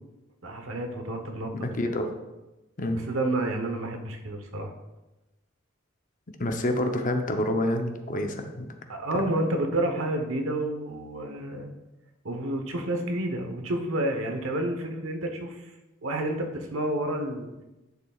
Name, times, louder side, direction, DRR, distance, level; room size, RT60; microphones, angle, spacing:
voice 1, 0.4-1.5 3.1-4.7 8.9-11.7 12.2-15.7 16.0-17.5, right 1 dB, 80° right, 4 dB, 1.0 m, -29 dB
voice 2, 1.5-2.1 2.8-3.0 6.4-8.8 9.1-9.3, left 1 dB, 40° left, 5 dB, 0.7 m, -28 dB
11.0 x 6.8 x 2.4 m, 1.0 s
head